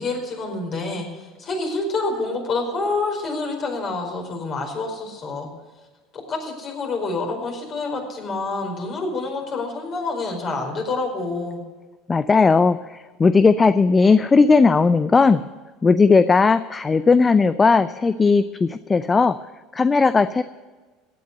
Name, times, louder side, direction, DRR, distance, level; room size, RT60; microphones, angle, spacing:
voice 1, 0.0-5.5 6.3-11.6, left 3 dB, 40° left, 2 dB, 4.9 m, -27 dB
voice 2, 12.1-15.4 15.8-19.4 19.7-20.4, left 4 dB, 25° left, 14 dB, 0.5 m, -17 dB
16.0 x 9.5 x 6.7 m, 1.3 s
hypercardioid pair, 75°, 0 cm